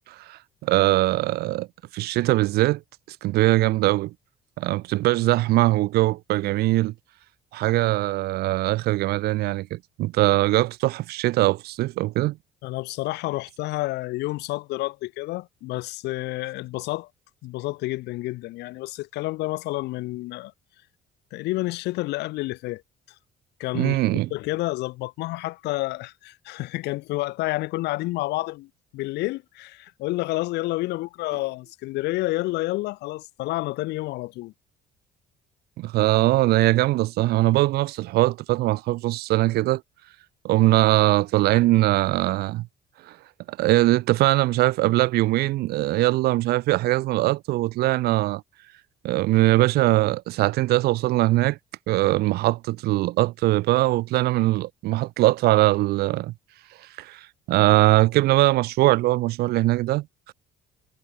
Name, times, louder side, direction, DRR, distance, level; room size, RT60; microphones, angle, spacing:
voice 1, 0.1-1.7 1.9-2.8 3.2-4.1 4.6-6.9 7.5-12.4 23.7-24.3 35.8-39.8 40.4-42.7 43.1-43.2 43.5-48.4 49.0-51.6 51.9-56.3 57.0-60.3, right 17 dB, 70° right, 0.4 m, -21 dB
voice 2, 12.6-17.1 17.4-20.5 21.3-22.8 23.6-24.0 24.3-34.5, left 19 dB, 85° left, 0.9 m, -29 dB
cardioid pair, 110°, 17 cm